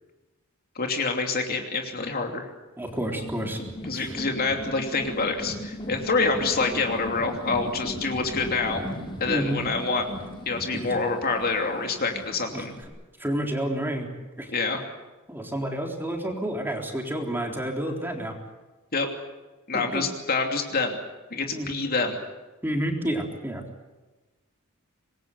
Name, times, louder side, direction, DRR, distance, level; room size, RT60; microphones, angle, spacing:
voice 1, 0.7-2.5 3.9-8.8 9.2-10.0 10.5-12.7 14.5-14.8 18.9-19.1 19.7-21.0 21.3-22.2, left 3 dB, 45° left, 3 dB, 2.9 m, -26 dB
sound 1, 2.8-12.8, left 1 dB, 25° left, 4.8 m, -37 dB
voice 2, 2.8-3.6 3.9-4.1 9.3-9.6 10.7-11.0 12.5-12.7 13.2-14.1 14.4-14.5 15.3-18.3 19.7-20.0 21.5-21.8 22.6-23.6, right 1 dB, 10° right, 1 dB, 3.9 m, -30 dB
25.5 x 21.5 x 8.1 m, 1.2 s
head